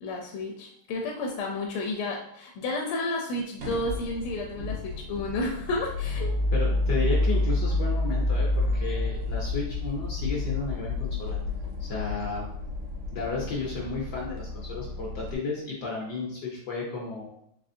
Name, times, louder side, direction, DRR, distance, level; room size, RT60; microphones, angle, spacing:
voice 1, 0.0-6.4, left 2 dB, 80° left, 1 dB, 1.5 m, -31 dB
sound 1, 3.6-15.4, left 2 dB, 85° right, 1.8 m, -29 dB
voice 2, 6.5-11.4 11.8-12.5 13.1-17.3, left 4 dB, 65° left, -4 dB, 1.2 m, -33 dB
4.2 x 3.2 x 2.6 m, 0.73 s
omnidirectional pair, 2.4 m